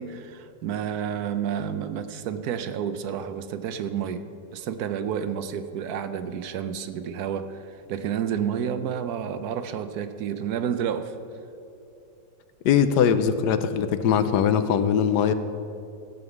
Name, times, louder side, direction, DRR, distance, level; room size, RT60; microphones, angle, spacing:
voice 1, 0.0-4.2 4.5-11.2, right 8 dB, 70° right, 10 dB, 1.1 m, -30 dB
voice 2, 12.6-15.3, left 8 dB, 75° left, 11 dB, 1.2 m, -21 dB
15.0 x 5.5 x 7.8 m, 2.7 s
omnidirectional pair, 1.8 m